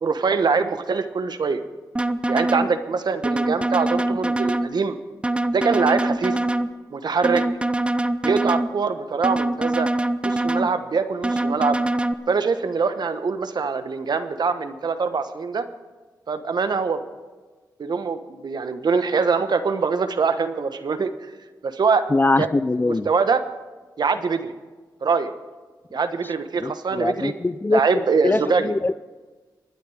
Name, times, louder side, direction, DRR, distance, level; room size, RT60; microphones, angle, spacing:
voice 1, 0.0-1.6 2.3-5.0 5.5-6.4 6.9-7.4 8.2-9.9 10.2-11.8 12.3-15.7 16.3-17.0 17.8-21.3 21.6-22.0 22.4-22.5 22.8-23.4 24.0-24.5 25.0-25.3 25.9-27.3 27.7-28.7, right 5 dB, 65° right, 9 dB, 1.1 m, -23 dB
sound 1, 2.0-2.7 3.2-4.7 5.2-6.7 7.2-8.7 9.2-10.7 11.2-12.1, right 1 dB, 15° right, 0.7 m, -23 dB
voice 2, 22.1-23.1 26.6-27.8 28.2-29.1, left 2 dB, 25° left, 16 dB, 0.5 m, -22 dB
24.0 x 9.4 x 4.9 m, 1.3 s
cardioid pair, 55°, 8 cm